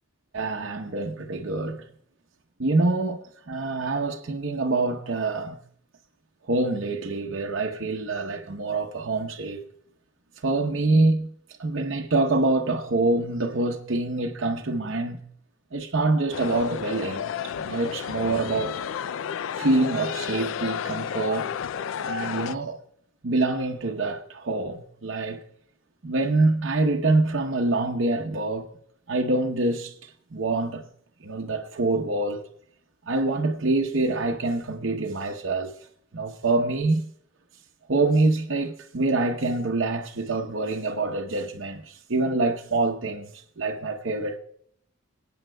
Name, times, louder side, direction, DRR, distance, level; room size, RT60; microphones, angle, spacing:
voice 1, 0.3-1.8 2.6-5.6 6.5-9.6 10.4-11.3 11.6-15.2 15.7-17.3 17.6-18.8 19.5-21.5 22.0-22.8 23.2-25.4 26.0-28.7 29.1-29.9 30.3-30.8 31.2-32.5 33.1-35.7 36.1-37.1 37.9-44.4, right 2 dB, 70° right, 0.8 m, -25 dB
sound 1, 16.3-22.6, left 8 dB, 70° left, 0.3 m, -31 dB
23.5 x 8.7 x 2.2 m
head